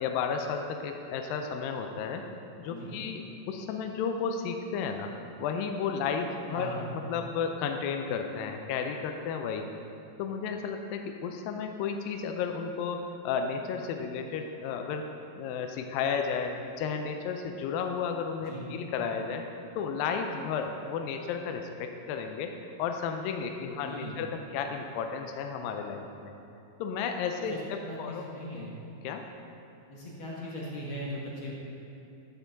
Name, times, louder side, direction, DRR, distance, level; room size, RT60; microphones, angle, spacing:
voice 1, 0.0-2.2 2.6-9.7 10.2-15.1 15.4-19.4 19.8-26.3 26.8-27.6 28.0-28.2 29.0-29.2, left 6 dB, 85° left, 4 dB, 2.4 m, -33 dB
voice 2, 6.5-6.9 18.5-18.7 23.8-24.2 27.5-27.6 27.8-28.7 29.9-31.5, left 1 dB, 45° left, -5 dB, 1.9 m, -39 dB
11.5 x 8.0 x 4.0 m, 2.8 s
omnidirectional pair, 4.0 m